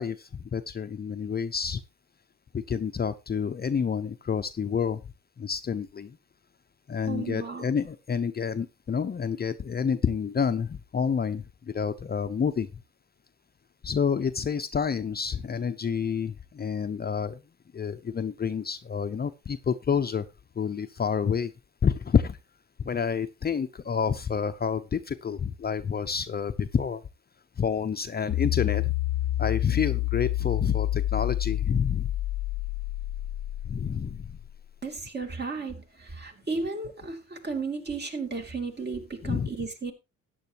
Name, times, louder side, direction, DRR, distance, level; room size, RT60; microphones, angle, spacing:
voice 1, 0.0-1.8 2.5-5.0 5.4-6.1 6.9-11.4 11.7-12.7 13.8-17.4 17.7-20.2 20.6-21.5 21.8-22.4 22.8-27.0 27.6-28.9 29.4-32.1 33.7-34.2 39.2-39.5, left 6 dB, 30° left, 0.7 m, -28 dB
voice 2, 7.1-7.7 34.8-39.9, right 4 dB, 35° right, 2.7 m, -34 dB
sound 1, 28.3-34.6, left 14 dB, 65° left, 0.7 m, -28 dB
13.5 x 9.3 x 2.9 m
cardioid pair, 90°, 30 cm